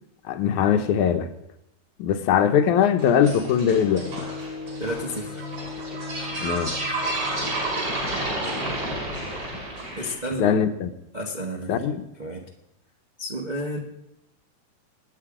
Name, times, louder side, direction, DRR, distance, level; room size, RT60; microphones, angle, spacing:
voice 1, 0.3-1.3 2.0-4.1 6.4-6.8 10.4-10.9 11.7-12.0, left 8 dB, 85° left, 2.4 m, -21 dB
sound 1, 3.0-10.1, right 2 dB, 45° right, 6.7 m, -31 dB
sound 2, 3.8-9.3, left 4 dB, 65° left, 2.0 m, -38 dB
voice 2, 4.8-5.4 10.0-10.6 11.1-11.9 12.2-12.5 13.2-13.8, equal, 70° right, 0.4 m, -31 dB
25.0 x 9.2 x 5.0 m
omnidirectional pair, 3.3 m